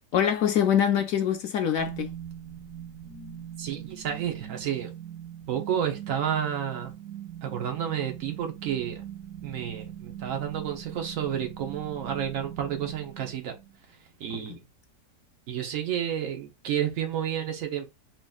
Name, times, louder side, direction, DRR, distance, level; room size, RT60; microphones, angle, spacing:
voice 1, 0.1-2.1 14.3-14.6, left 9 dB, 70° left, 0.8 m, -24 dB
sound 1, 1.8-13.8, right 10 dB, 75° right, 3.1 m, -41 dB
voice 2, 3.6-4.9 5.5-6.9 7.4-9.0 9.4-13.5 14.2-14.6 15.5-17.9, right 9 dB, 60° right, 1.2 m, -31 dB
5.3 x 3.0 x 2.3 m
omnidirectional pair, 1.8 m